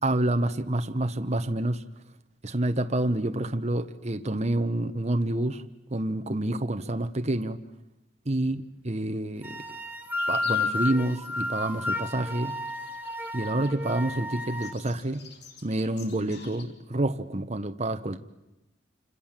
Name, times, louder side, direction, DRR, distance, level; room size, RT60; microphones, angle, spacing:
voice 1, 0.0-1.8 2.4-5.6 5.9-7.6 8.3-9.5 10.3-12.5 13.3-15.3 15.6-18.2, right 1 dB, 35° right, 9 dB, 1.1 m, -28 dB
sound 1, 9.4-14.7, left 3 dB, 10° right, 1.5 m, -32 dB
sound 2, 10.2-16.6, left 5 dB, 60° left, 3.4 m, -51 dB
28.5 x 26.5 x 7.5 m, 0.93 s
head